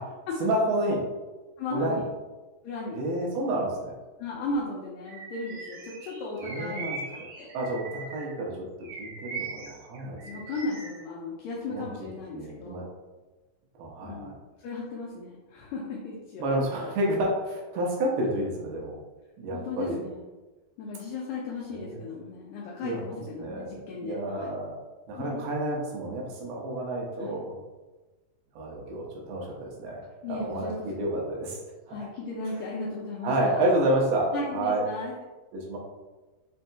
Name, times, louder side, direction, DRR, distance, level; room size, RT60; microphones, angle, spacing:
voice 1, 0.4-1.0 1.7-2.0 2.9-3.9 6.4-7.3 7.5-8.7 9.0-10.2 11.7-11.8 12.3-12.9 13.8-14.3 16.4-18.9 19.4-20.0 21.7-22.0 22.8-24.7 25.1-27.5 28.6-30.0 30.3-31.6 32.5-32.6 33.2-34.8 35.5-35.8, right 1 dB, 85° right, -2 dB, 2.7 m, -29 dB
voice 2, 1.6-2.1 2.6-3.0 4.2-7.5 10.2-12.9 14.0-16.5 19.5-20.2 20.8-24.5 25.2-25.4 27.2-27.4 30.2-31.1 31.9-33.6 34.3-35.1, left 3 dB, 85° left, -5 dB, 1.9 m, -36 dB
Bird vocalization bird call bird song, 5.1-8.4 8.8-11.0, right 4 dB, 65° right, 2.0 m, -40 dB
6.1 x 2.7 x 2.2 m, 1.2 s
omnidirectional pair, 4.2 m